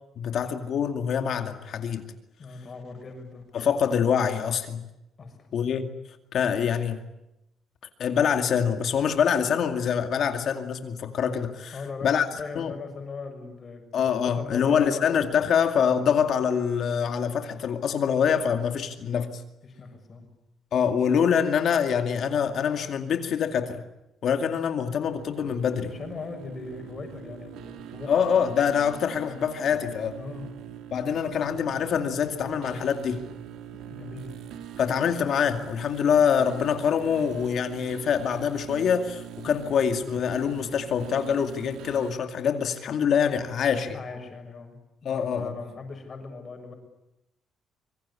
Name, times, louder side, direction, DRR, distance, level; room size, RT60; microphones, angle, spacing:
voice 1, 0.2-2.0 3.5-4.8 5.5-5.9 6.3-7.0 8.0-11.8 12.0-12.3 12.6-12.7 13.9-19.4 20.7-23.8 24.2-25.9 28.1-30.2 30.9-33.2 34.8-44.0 45.0-45.5, left 7 dB, 45° left, 6 dB, 2.3 m, -25 dB
voice 2, 2.4-3.4 5.2-5.5 11.7-13.8 14.3-15.0 19.6-20.2 25.9-28.1 30.2-30.5 33.8-34.3 39.5-39.7 43.9-44.8 45.0-46.7, left 4 dB, 25° left, 5 dB, 6.8 m, -39 dB
sound 1, 25.1-42.1, right 10 dB, 80° right, 2.4 m, -43 dB
26.0 x 24.0 x 8.5 m, 0.90 s
cardioid pair, 175°, 0 cm